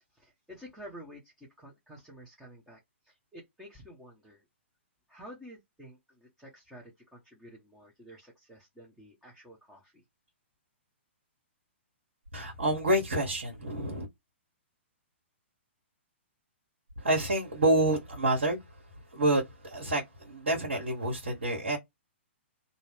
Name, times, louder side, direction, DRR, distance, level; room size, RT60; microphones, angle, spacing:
voice 1, 0.0-4.4 5.1-10.0, equal, 5° right, 0.9 m, -51 dB
voice 2, 12.3-14.1 17.0-18.8 19.1-21.8, right 1 dB, 70° right, 1.3 m, -28 dB
2.6 x 2.3 x 3.4 m
figure-of-eight pair, 120°, 7 cm